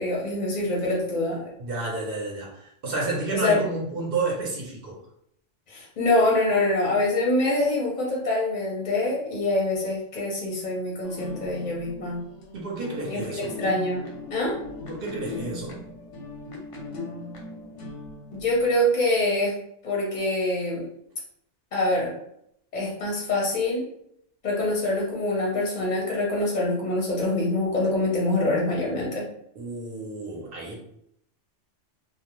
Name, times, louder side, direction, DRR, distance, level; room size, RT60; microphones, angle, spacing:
voice 1, 0.0-1.5 3.3-3.6 5.7-12.2 13.1-14.6 18.3-19.5 19.8-20.8 21.7-22.1 22.7-23.8 24.4-29.2, left 2 dB, 45° left, -3 dB, 0.6 m, -25 dB
voice 2, 1.6-4.9 12.5-13.6 14.9-15.8 29.6-30.8, right 3 dB, 55° right, -2 dB, 0.8 m, -31 dB
sound 1, 11.0-18.7, left 2 dB, 90° left, 0.9 m, -39 dB
2.3 x 2.0 x 2.9 m, 0.73 s
omnidirectional pair, 1.2 m